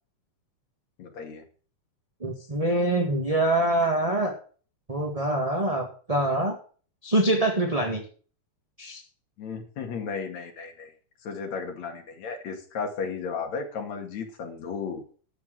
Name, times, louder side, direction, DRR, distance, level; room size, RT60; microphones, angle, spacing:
voice 1, 1.0-1.4 9.4-10.9 11.2-15.0, left 5 dB, 60° left, 3 dB, 3.4 m, -34 dB
voice 2, 2.2-4.3 4.9-6.6 7.0-8.0 8.8-9.0, right 1 dB, 15° right, 2 dB, 1.3 m, -25 dB
13.0 x 6.1 x 7.7 m, 0.42 s
omnidirectional pair, 3.5 m